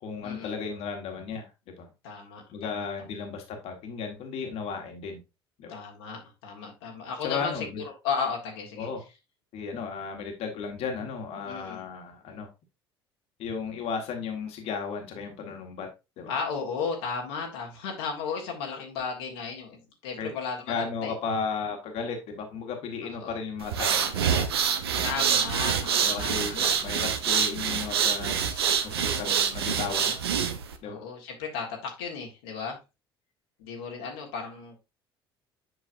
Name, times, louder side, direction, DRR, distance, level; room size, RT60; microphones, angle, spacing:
voice 1, 0.0-1.5 1.8-1.9 2.5-5.2 5.6-5.8 7.2-7.8 8.8-9.0 9.5-12.5 13.4-15.9 16.2-16.3 20.2-20.3 20.7-24.6 26.0-30.2 30.8-31.0, left 5 dB, 55° left, 3 dB, 1.5 m, -35 dB
voice 2, 2.0-3.1 5.7-8.9 11.4-11.8 16.3-21.1 23.0-23.4 25.0-26.7 28.9-29.3 29.8-30.1 30.8-32.8 33.6-34.8, left 5 dB, 70° left, 0 dB, 1.5 m, -35 dB
sound 1, 23.6-30.7, right 7 dB, 80° right, 0.7 m, -26 dB
8.0 x 5.5 x 2.6 m, 0.26 s
figure-of-eight pair, 60°, 13 cm